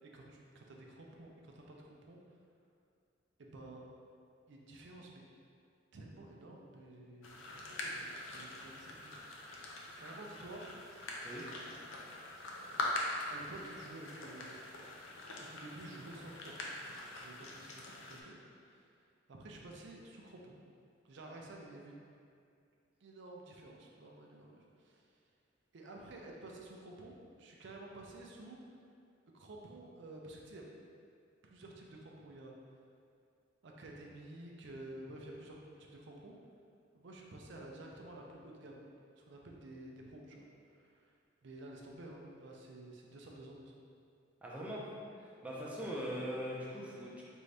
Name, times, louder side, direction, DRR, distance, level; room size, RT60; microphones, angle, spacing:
voice 1, 0.0-2.4 3.4-3.9 4.5-5.2 5.9-9.1 9.6-10.7 13.3-14.6 14.8-15.0 15.3-20.5 21.0-22.1 23.0-25.3 25.7-28.8 29.3-30.7 31.4-32.8 33.6-36.4 36.9-38.9 39.2-43.7 45.5-45.7, right 2 dB, 65° right, -1 dB, 0.5 m, -52 dB
sound 1, 7.2-18.2, left 2 dB, 90° left, 0.6 m, -43 dB
voice 2, 44.4-44.9 45.2-47.2, equal, 5° right, -6 dB, 0.6 m, -41 dB
4.6 x 2.6 x 3.3 m, 2.4 s
head